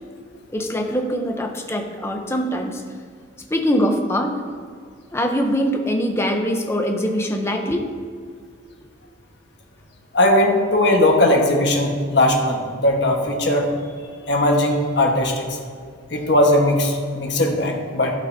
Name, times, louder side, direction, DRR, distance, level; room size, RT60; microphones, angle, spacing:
voice 1, 0.5-2.8 3.5-4.4 5.1-7.9, equal, 15° left, 3 dB, 0.7 m, -23 dB
voice 2, 10.1-13.7 14.3-15.4 16.1-18.1, left 1 dB, 60° left, 1 dB, 1.3 m, -18 dB
15.0 x 5.3 x 2.7 m, 2.1 s
head